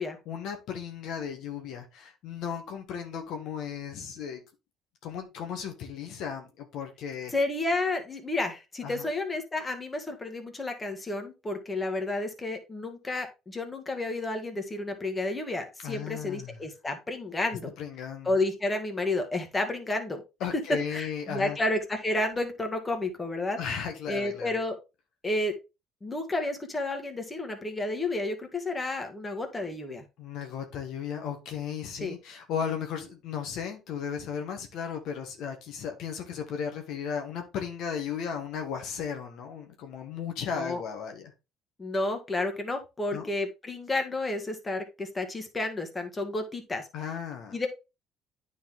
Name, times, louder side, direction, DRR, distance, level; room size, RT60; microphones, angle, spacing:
voice 1, 0.2-4.4 5.0-7.3 8.8-9.1 15.8-16.6 17.8-18.4 20.4-21.6 23.6-24.6 30.2-41.3 43.1-43.3 46.9-47.6, left 7 dB, 70° left, 1.4 m, -35 dB
voice 2, 7.3-17.7 18.3-20.2 20.7-23.6 24.1-24.8 25.2-25.5 26.0-30.0 32.0-32.1 40.5-40.8 41.8-46.8 47.5-47.7, left 2 dB, 20° left, 1.9 m, -31 dB
9.3 x 4.2 x 3.6 m
supercardioid pair, 85°, 0 cm